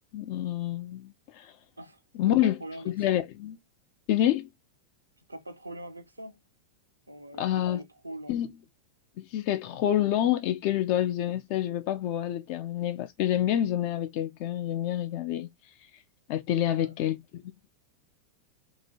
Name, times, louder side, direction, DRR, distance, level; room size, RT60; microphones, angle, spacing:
voice 1, 0.1-1.5 2.2-2.6 2.9-3.6 4.1-4.5 7.4-7.8 8.3-8.5 9.2-15.5 16.3-17.7, left 12 dB, 45° left, 0.3 m, -28 dB
voice 2, 2.3-3.2 5.3-6.4 7.1-8.4 16.7-16.9, right 1 dB, 85° right, 0.5 m, -43 dB
2.9 x 2.3 x 2.6 m
figure-of-eight pair, 90°, 0 cm